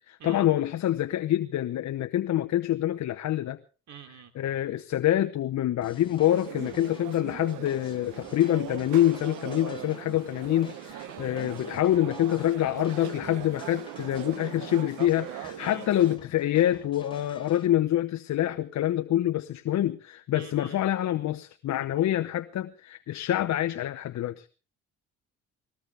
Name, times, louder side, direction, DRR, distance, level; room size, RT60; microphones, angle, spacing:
voice 1, 0.1-3.6 4.3-24.5, left 12 dB, 65° left, 0.8 m, -26 dB
voice 2, 3.9-4.3 15.6-15.8 20.3-20.8 21.7-21.9, right 8 dB, 65° right, 3.1 m, -47 dB
sound 1, 5.8-17.7, left 3 dB, 15° left, 3.8 m, -51 dB
sound 2, 6.2-16.2, right 12 dB, 85° right, 1.1 m, -40 dB
20.0 x 18.0 x 3.4 m
cardioid pair, 90°, 30 cm